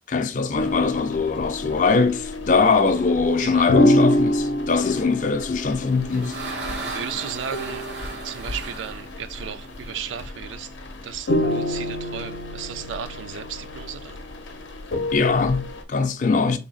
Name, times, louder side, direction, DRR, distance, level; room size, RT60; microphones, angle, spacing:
voice 1, 0.1-6.4 15.1-16.6, left 4 dB, 40° left, 0.4 m, -22 dB
sound 1, 0.6-15.8, left 1 dB, 85° left, 0.6 m, -27 dB
voice 2, 3.4-3.7 4.8-5.0 6.9-7.9 8.2-10.7 11.0-14.2, right 8 dB, 90° right, 0.4 m, -35 dB
sound 2, 5.6-10.3, right 3 dB, 70° right, 0.7 m, -36 dB
3.5 x 2.0 x 3.8 m
head